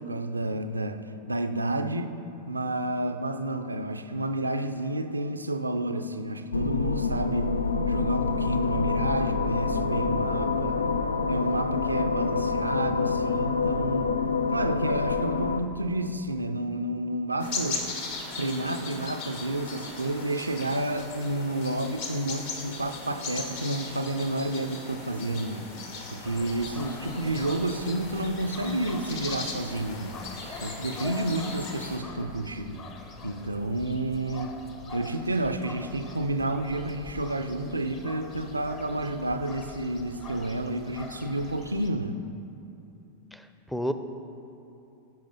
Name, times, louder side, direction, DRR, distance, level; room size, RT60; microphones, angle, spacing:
voice 1, 0.0-2.1 2.5-7.5 7.9-10.8 11.3-14.1 14.5-17.9 18.4-25.7 26.1-30.2 30.6-32.8 33.2-34.6 34.9-42.2, right 1 dB, 80° right, 8 dB, 0.5 m, -30 dB
sound 1, 6.5-15.6, left 4 dB, 75° left, 0.4 m, -27 dB
sound 2, 17.4-32.0, left 3 dB, 55° left, 1.5 m, -38 dB
sound 3, 26.2-41.9, left 4 dB, 35° left, 1.1 m, -44 dB
voice 2, 43.3-43.9, equal, ahead, 9 dB, 0.6 m, -31 dB
15.5 x 5.3 x 5.4 m, 2.7 s
figure-of-eight pair, 90°, 0 cm